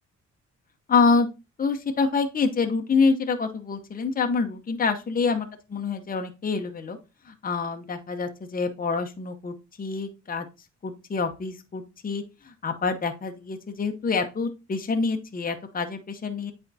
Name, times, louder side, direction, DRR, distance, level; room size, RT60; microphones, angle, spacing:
voice 1, 0.9-1.3 1.6-7.0 7.3-10.5 10.8-16.5, left 4 dB, 30° left, 5 dB, 0.8 m, -26 dB
8.2 x 4.4 x 2.7 m, 0.27 s
cardioid pair, 105°, 30 cm